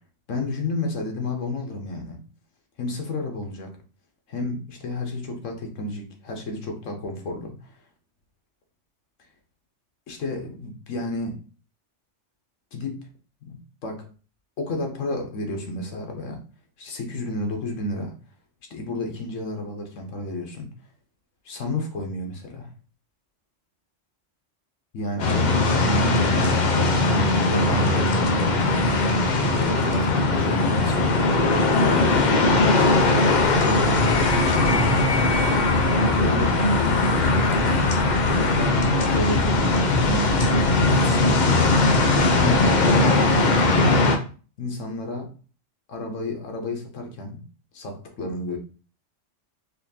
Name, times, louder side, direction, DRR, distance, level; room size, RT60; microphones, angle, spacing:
voice 1, 0.3-2.2 2.8-3.8 4.3-7.7 10.1-11.4 12.7-13.0 13.4-14.1 14.6-16.4 16.8-18.1 18.7-20.7 21.4-22.7 24.9-26.6 27.1-28.5 29.4-31.4 31.7-32.1 32.7-33.3 33.6-39.5 40.0-40.3 40.9-44.1 44.6-45.3 45.9-47.4 47.7-48.6, left 2 dB, 90° left, 1.3 m, -31 dB
sound 1, 25.2-44.2, left 2 dB, 45° left, 0.6 m, -20 dB
4.1 x 2.9 x 2.7 m
omnidirectional pair, 1.3 m